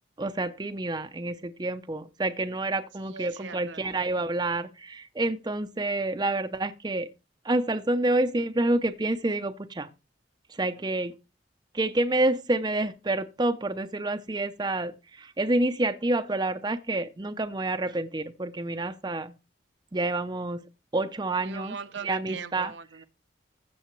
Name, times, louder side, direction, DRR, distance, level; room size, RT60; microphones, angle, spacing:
voice 1, 0.2-7.1 7.4-9.9 10.5-11.1 11.7-19.3 19.9-20.6 20.9-21.7 22.0-22.7, right 2 dB, 20° right, 0.5 m, -28 dB
voice 2, 3.0-3.8 21.4-23.0, right 5 dB, 75° right, 0.7 m, -40 dB
15.0 x 6.8 x 3.1 m
head